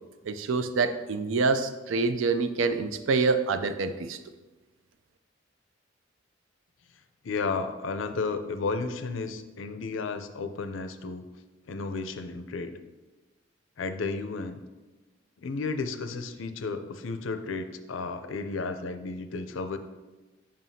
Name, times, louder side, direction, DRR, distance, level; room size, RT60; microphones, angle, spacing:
voice 1, 0.2-4.2, right 4 dB, 75° right, 10 dB, 0.4 m, -26 dB
voice 2, 7.2-11.2 11.7-12.8 13.8-14.6 15.4-19.8, left 4 dB, 75° left, 8 dB, 0.5 m, -33 dB
7.4 x 5.2 x 2.7 m, 1.2 s
head